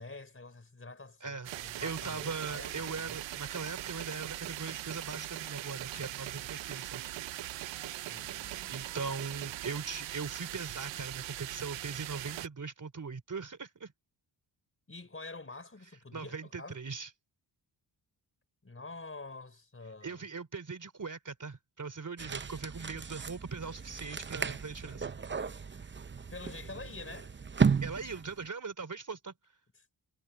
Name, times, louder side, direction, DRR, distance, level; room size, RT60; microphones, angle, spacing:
voice 1, 0.0-3.2 8.1-8.8 14.9-16.8 18.6-20.2 23.0-23.1 24.8-25.2 25.7-25.9 26.2-27.3, left 3 dB, 30° left, 4.8 m, -47 dB
sound 1, 1.4-12.5, right 14 dB, 80° right, 0.6 m, -41 dB
voice 2, 1.8-7.0 8.7-13.9 16.1-17.1 20.0-25.1 27.8-29.3, right 4 dB, 45° right, 3.8 m, -40 dB
sound 2, 22.2-28.5, right 5 dB, 25° right, 0.7 m, -34 dB
cardioid pair, 80°, 44 cm